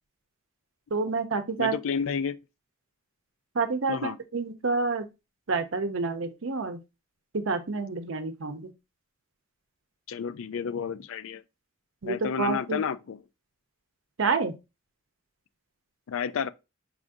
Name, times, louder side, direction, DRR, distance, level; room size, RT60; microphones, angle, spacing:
voice 1, 0.9-1.7 3.5-5.1 5.5-6.8 7.3-8.7 12.0-12.8 14.2-14.5, right 4 dB, 65° right, 0.7 m, -28 dB
voice 2, 1.6-2.4 3.9-4.2 10.1-11.4 12.0-13.2 16.1-16.5, left 6 dB, 75° left, 0.4 m, -31 dB
4.8 x 2.6 x 3.6 m
head